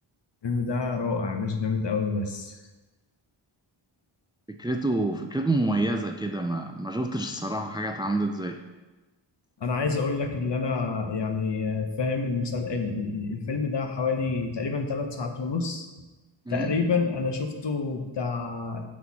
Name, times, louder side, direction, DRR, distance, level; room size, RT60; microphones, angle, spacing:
voice 1, 0.4-2.6 9.6-15.9 16.5-18.8, left 4 dB, 60° left, 5 dB, 0.9 m, -28 dB
voice 2, 4.6-8.6 16.5-16.7, right 2 dB, 10° right, 6 dB, 0.3 m, -27 dB
7.8 x 4.3 x 4.2 m, 1.2 s
cardioid pair, 70°, 49 cm